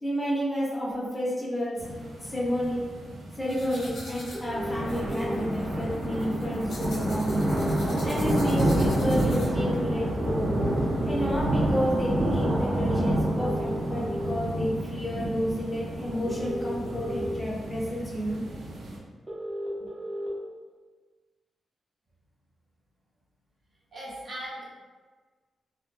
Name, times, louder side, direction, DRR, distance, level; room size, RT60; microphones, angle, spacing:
voice 1, 0.0-1.8 2.2-2.9 3.4-7.4 8.0-10.6 11.1-18.4 19.8-19.9, equal, 25° left, -6 dB, 0.7 m, -30 dB
sound 1, 1.8-19.0, right 1 dB, 70° right, 0.5 m, -29 dB
sound 2, 3.5-9.8, left 1 dB, 65° left, 0.7 m, -45 dB
sound 3, 4.3-5.3 7.3-8.3 10.3-11.3 13.3-14.3 16.3-17.3 19.3-20.3, right 1 dB, 15° right, 0.7 m, -35 dB
voice 2, 23.9-24.6, equal, 50° right, -7 dB, 0.9 m, -38 dB
2.2 x 2.1 x 2.9 m, 1.4 s
cardioid pair, 90°, 0 cm